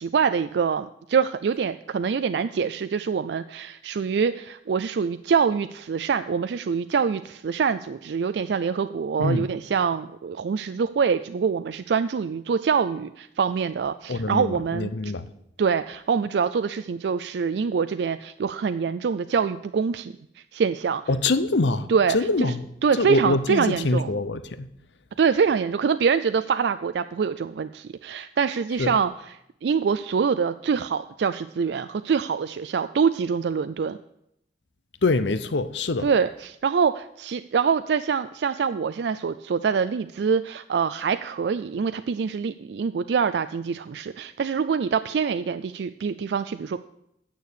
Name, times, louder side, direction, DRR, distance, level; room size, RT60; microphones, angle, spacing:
voice 1, 0.0-15.1 15.6-21.0 21.9-22.5 22.8-24.1 25.2-29.1 29.6-34.0 36.0-46.8, right 6 dB, 70° right, 0.4 m, -25 dB
voice 2, 14.1-15.3 21.1-22.6 23.0-24.7 28.8-28.9 35.0-36.1, left 3 dB, 85° left, 0.8 m, -24 dB
9.3 x 6.7 x 8.3 m
head